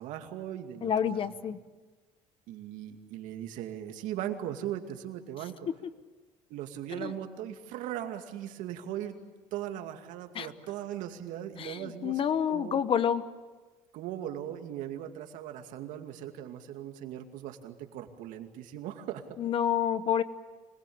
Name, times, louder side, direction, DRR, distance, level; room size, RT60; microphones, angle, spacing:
voice 1, 0.0-1.5 2.5-5.7 6.5-9.2 9.5-12.2 12.5-12.8 13.9-19.2, right 11 dB, 75° right, 6 dB, 2.4 m, -39 dB
voice 2, 0.8-1.6 7.0-7.1 10.3-10.5 11.6-13.2 19.4-20.2, left 8 dB, 45° left, 13 dB, 1.2 m, -28 dB
25.5 x 20.5 x 8.8 m, 1.3 s
cardioid pair, 120°, 13 cm